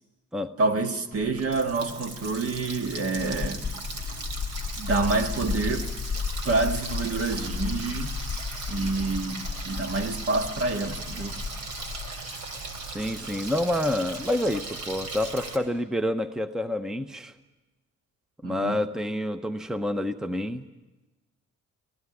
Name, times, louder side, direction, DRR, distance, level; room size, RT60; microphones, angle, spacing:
voice 1, 0.6-3.7 4.8-5.9 6.4-8.1 8.7-11.3 18.4-18.8, right 3 dB, 50° right, 1.8 m, -27 dB
Water tap faucet, 1.1-15.6, right 3 dB, 90° right, 3.2 m, -38 dB
sound 1, 3.2-12.2, left 6 dB, 25° left, 0.7 m, -34 dB
voice 2, 12.9-17.3 18.4-20.6, left 1 dB, ahead, 0.7 m, -28 dB
19.0 x 17.0 x 9.6 m
cardioid pair, 90°, 30 cm